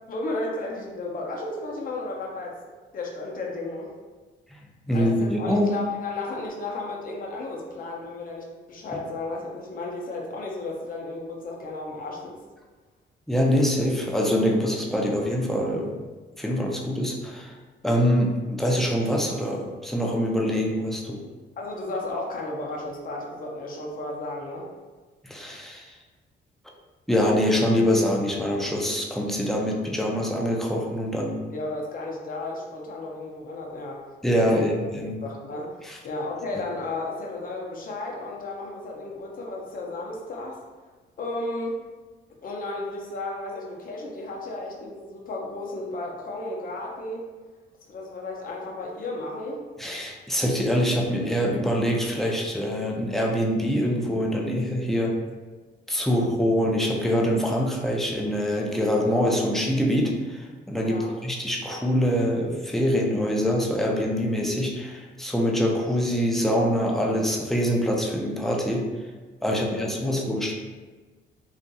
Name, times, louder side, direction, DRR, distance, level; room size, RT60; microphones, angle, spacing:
voice 1, 0.1-2.6 2.9-3.9 4.9-12.4 21.6-24.7 31.5-34.0 34.5-34.7 35.2-35.8 36.0-40.6 41.2-41.8 42.4-47.2 47.9-49.6 60.8-61.1 69.5-70.1, left 2 dB, 45° left, -1 dB, 0.6 m, -33 dB
voice 2, 4.9-5.7 13.3-16.0 16.4-17.5 17.8-21.2 25.2-25.9 27.1-31.4 34.2-35.1 35.9-36.0 49.8-55.2 55.9-68.9 69.4-70.5, equal, ahead, -1 dB, 0.4 m, -24 dB
2.7 x 2.5 x 2.2 m, 1.3 s
cardioid pair, 90°, 20 cm